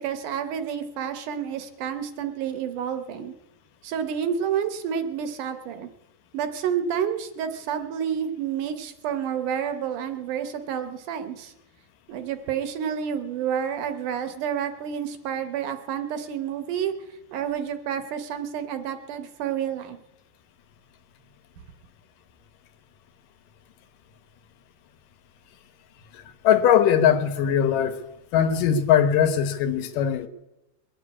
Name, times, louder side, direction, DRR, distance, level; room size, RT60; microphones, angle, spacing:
voice 1, 0.0-3.3 3.8-5.9 6.3-11.5 12.1-16.9 17.3-20.0, right 8 dB, 75° right, 8 dB, 2.3 m, -29 dB
voice 2, 26.1-28.0 28.3-30.3, left 9 dB, 75° left, 9 dB, 2.6 m, -20 dB
22.0 x 7.7 x 8.5 m, 0.96 s
omnidirectional pair, 3.9 m